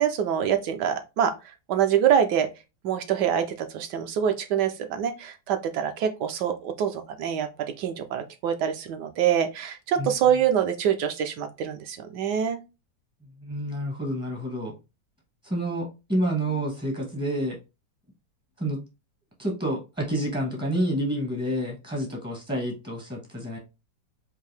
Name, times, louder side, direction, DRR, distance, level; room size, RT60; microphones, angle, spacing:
voice 1, 0.0-1.3 1.7-2.5 2.8-7.5 7.8-12.6, right 9 dB, 75° right, 1.1 m, -25 dB
voice 2, 13.3-14.7 15.4-17.6 18.6-18.8 19.4-23.6, right 1 dB, 10° right, 0.5 m, -29 dB
4.6 x 2.6 x 3.2 m
omnidirectional pair, 2.0 m